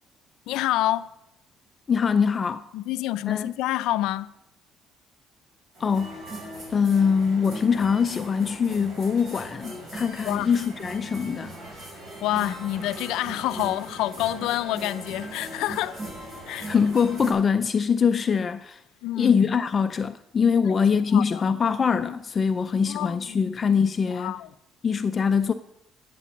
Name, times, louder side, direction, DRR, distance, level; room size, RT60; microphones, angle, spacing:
voice 1, 0.5-1.1 2.7-4.3 10.2-10.6 12.2-16.0 16.5-16.7 19.0-19.4 20.6-21.4 22.8-23.4 24.1-24.5, left 15 dB, 85° left, 0.4 m, -28 dB
voice 2, 1.9-2.6 3.3-3.5 5.8-6.2 6.7-11.6 16.5-18.8 19.2-24.4 24.8-25.5, left 6 dB, 30° left, 0.4 m, -23 dB
sound 1, 5.7-17.3, right 1 dB, 40° right, 5.4 m, -39 dB
10.5 x 8.3 x 7.2 m
cardioid pair, 150°, 0 cm